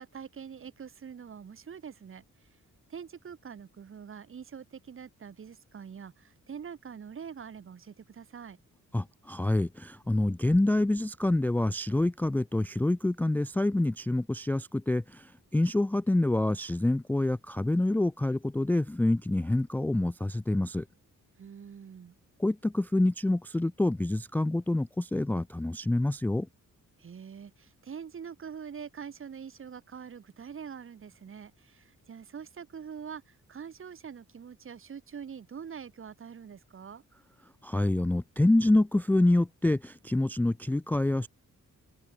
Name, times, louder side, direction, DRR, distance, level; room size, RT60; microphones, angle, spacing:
voice 1, 0.0-2.6 2.9-8.6 21.4-22.1 27.0-37.0, right 7 dB, 40° right, 1.7 m, -44 dB
voice 2, 8.9-20.9 22.4-26.5 37.6-41.3, left 1 dB, 5° left, 0.4 m, -27 dB
open air
wide cardioid pair, 180°, 32 cm